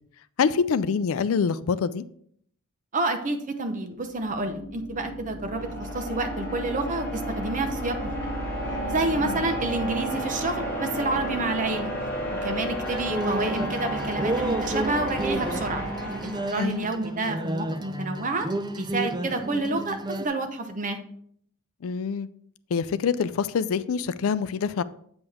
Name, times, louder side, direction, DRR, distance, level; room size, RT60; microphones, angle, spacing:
voice 1, 0.4-2.0 9.2-9.4 16.6-16.9 21.8-22.3 22.7-24.8, left 6 dB, 65° left, 0.4 m, -25 dB
voice 2, 2.9-8.1 8.9-11.9 12.4-15.8 16.2-18.5 18.8-21.0, right 2 dB, 35° right, 0.8 m, -29 dB
sound 1, 3.9-17.0, equal, 10° left, 2.7 m, -32 dB
sound 2, 12.8-20.3, right 1 dB, 20° right, 0.5 m, -31 dB
8.0 x 5.3 x 3.5 m
head